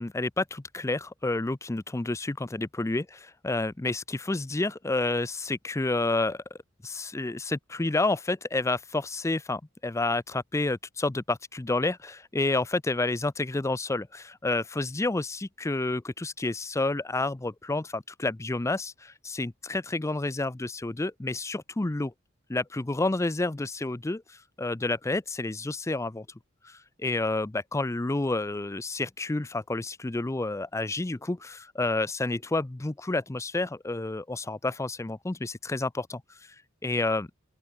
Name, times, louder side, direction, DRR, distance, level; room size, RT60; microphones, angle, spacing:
voice 1, 0.0-3.1 3.4-6.6 6.8-22.1 22.5-26.3 26.6-36.2 36.8-37.3, left 2 dB, 15° left, 0.5 m, -29 dB
open air
head